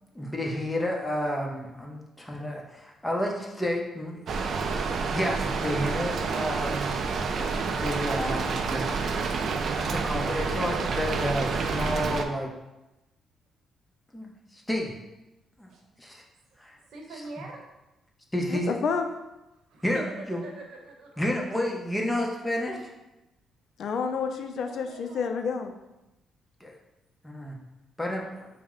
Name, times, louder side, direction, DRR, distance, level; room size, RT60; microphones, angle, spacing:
voice 1, 0.1-7.0 7.8-9.0 9.7-12.5 14.1-14.9 15.6-15.7 16.0-16.2 16.6-16.8 18.3-18.7 19.8-20.0 20.3-20.4 21.2-22.9 26.6-26.8 27.2-27.6 28.0-28.5, equal, 10° left, 0 dB, 0.7 m, -31 dB
Rain, 4.3-12.3, right 4 dB, 55° right, 0.3 m, -29 dB
voice 2, 16.7-17.6 19.7-21.2 24.7-25.3 28.2-28.5, right 2 dB, 70° right, 0 dB, 0.8 m, -44 dB
voice 3, 18.5-19.1 23.8-25.7, left 5 dB, 65° left, 6 dB, 0.4 m, -29 dB
4.2 x 2.1 x 3.6 m, 0.97 s
cardioid pair, 90°, 0 cm